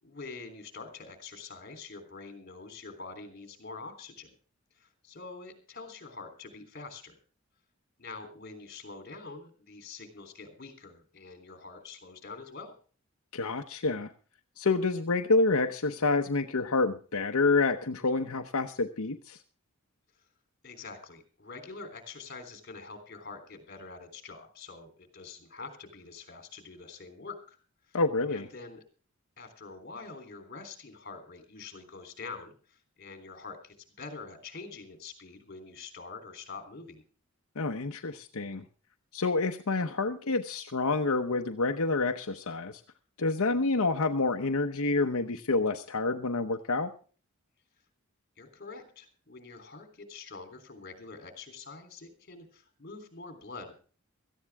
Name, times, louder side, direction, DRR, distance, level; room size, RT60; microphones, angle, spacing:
voice 1, 0.0-4.3 4.7-7.1 8.0-12.7 20.1-20.2 20.6-27.6 27.8-28.0 28.3-28.8 29.4-37.0 48.4-53.7, left 4 dB, 50° left, 7 dB, 3.4 m, -45 dB
voice 2, 13.3-14.1 14.6-19.4 27.9-28.5 37.6-38.7 39.1-42.8 43.2-46.9, left 3 dB, 90° left, 5 dB, 0.9 m, -28 dB
17.5 x 14.0 x 3.5 m, 0.39 s
head